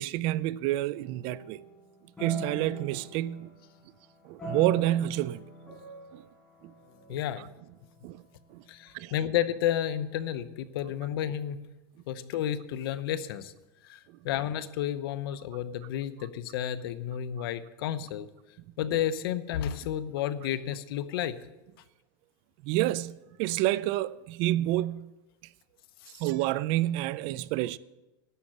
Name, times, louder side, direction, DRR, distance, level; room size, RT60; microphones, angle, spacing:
voice 1, 0.0-1.6 2.2-3.5 4.2-5.4 6.1-6.2 7.1-7.2 8.0-8.2 8.5-8.6 8.9-9.1 22.6-25.1 26.2-27.8, right 15 dB, 45° right, 0.4 m, -28 dB
sound 1, 0.9-3.9 4.4-8.3, equal, 10° left, 4.7 m, -43 dB
voice 2, 7.1-7.5 8.7-11.6 12.1-13.5 13.8-14.0 14.2-18.3 18.8-21.4 26.0-26.1, left 10 dB, 70° left, 0.8 m, -31 dB
11.0 x 7.3 x 7.8 m
supercardioid pair, 145°, 13 cm